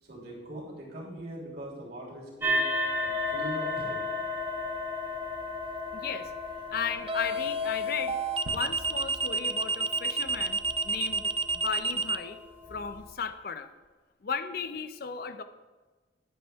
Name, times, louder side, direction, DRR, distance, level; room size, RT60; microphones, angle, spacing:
voice 1, 0.0-2.7 3.0-4.0, right 1 dB, 55° right, -5 dB, 3.3 m, -41 dB
sound 1, 2.4-13.0, left 2 dB, 10° right, 1.4 m, -35 dB
sound 2, 3.8-4.1 7.1-12.2, right 3 dB, 30° right, 0.4 m, -29 dB
voice 2, 5.9-6.3 6.7-8.2 8.4-12.4 12.7-13.7 14.2-15.4, left 6 dB, 55° left, 11 dB, 0.5 m, -35 dB
sound 3, 8.5-10.4, right 2 dB, 85° right, 0.7 m, -47 dB
10.5 x 8.6 x 3.4 m, 1.3 s
head